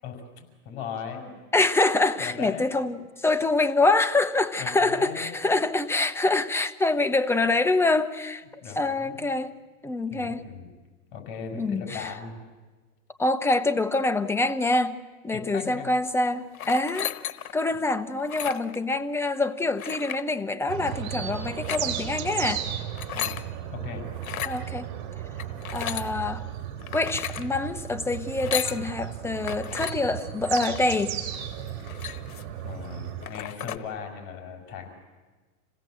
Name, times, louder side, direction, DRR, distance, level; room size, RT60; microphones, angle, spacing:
voice 1, 0.0-1.4 2.2-2.9 4.6-5.5 8.6-9.3 10.1-10.7 11.1-12.4 15.3-15.9 23.1-24.0 24.3-24.5 32.6-34.9, left 6 dB, 45° left, 6.2 m, -38 dB
voice 2, 1.5-10.4 11.5-12.1 13.2-15.0 15.2-17.1 17.5-22.7 24.4-24.9 25.7-26.4 26.9-31.1, left 2 dB, 5° left, 0.8 m, -25 dB
sound 1, 16.5-17.6 18.2-18.8 19.8-20.2 21.4-21.8 22.8-23.4 24.2-24.6 25.4-26.1 26.8-27.5 28.3-28.8 29.4-29.9 30.4-30.8 31.3-31.4 31.7-32.5 32.9-33.0 33.2-33.8, left 10 dB, 85° left, 1.2 m, -34 dB
sound 2, 20.7-33.3, right 10 dB, 50° right, 3.9 m, -35 dB
27.0 x 17.0 x 7.8 m
hypercardioid pair, 120°, 42 cm